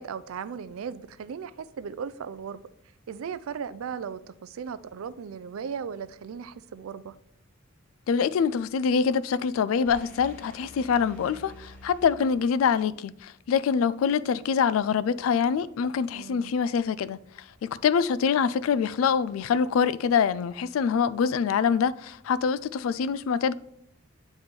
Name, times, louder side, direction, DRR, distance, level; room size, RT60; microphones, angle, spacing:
voice 1, 0.0-2.6 3.1-7.1 16.1-16.5, right 6 dB, 85° right, 0.4 m, -37 dB
voice 2, 8.1-17.2 17.6-23.5, left 6 dB, 80° left, 0.3 m, -25 dB
sound 1, 9.9-12.8, equal, 10° left, 1.1 m, -48 dB
8.4 x 3.4 x 4.3 m
head